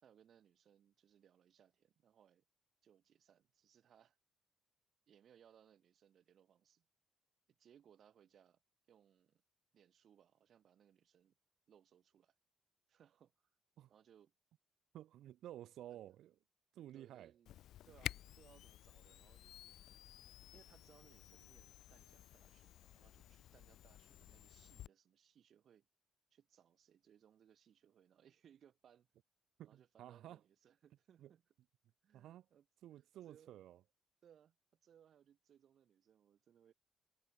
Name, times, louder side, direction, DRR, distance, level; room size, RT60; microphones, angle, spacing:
voice 1, 0.0-2.4 2.8-4.2 5.1-6.9 7.5-8.6 8.9-9.4 9.7-11.4 11.7-12.4 12.9-13.6 13.9-14.3 15.9-16.0 16.9-17.6 17.9-19.8 20.5-25.9 26.3-29.1 29.6-31.4 32.0-32.7 33.0-33.5 34.2-36.7, right 9 dB, 60° right, 5.2 m, -68 dB
voice 2, 14.9-16.3 16.7-17.3 29.6-30.4 31.2-31.3 32.1-32.4 32.8-33.8, right 12 dB, 80° right, 4.2 m, -53 dB
Camera, 17.5-24.9, left 13 dB, 80° left, 0.6 m, -52 dB
cardioid pair, 90°, 0 cm